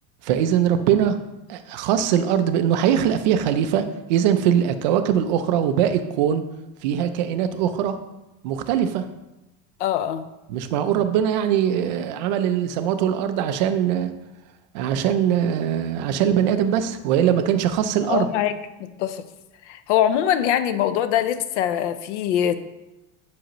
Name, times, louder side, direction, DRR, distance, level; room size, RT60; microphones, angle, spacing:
voice 1, 0.2-1.2 1.5-6.4 6.8-8.0 8.4-9.0 10.5-14.1 14.7-18.3, right 9 dB, 35° right, 10 dB, 0.4 m, -21 dB
voice 2, 9.8-10.3 18.0-18.6 19.0-19.2 19.7-22.6, left 10 dB, 55° left, 11 dB, 0.6 m, -22 dB
7.7 x 7.5 x 3.0 m, 0.98 s
supercardioid pair, 175°, 42 cm